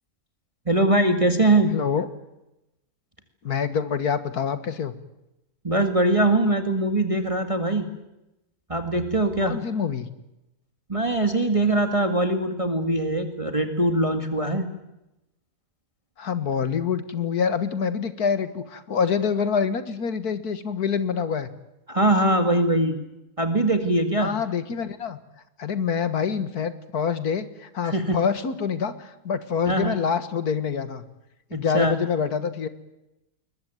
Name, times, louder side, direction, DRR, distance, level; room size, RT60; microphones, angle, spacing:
voice 1, 0.7-1.7 5.6-7.9 8.7-9.6 10.9-14.7 21.9-22.9 23.4-24.3 27.8-28.2 29.7-30.0 31.5-32.0, right 1 dB, 20° right, 7 dB, 2.0 m, -22 dB
voice 2, 1.7-2.1 3.4-4.9 9.4-10.1 16.2-21.5 24.2-25.2 25.6-31.0 31.5-32.7, left 6 dB, 85° left, 13 dB, 2.1 m, -26 dB
21.5 x 21.0 x 9.2 m, 0.91 s
omnidirectional pair, 1.6 m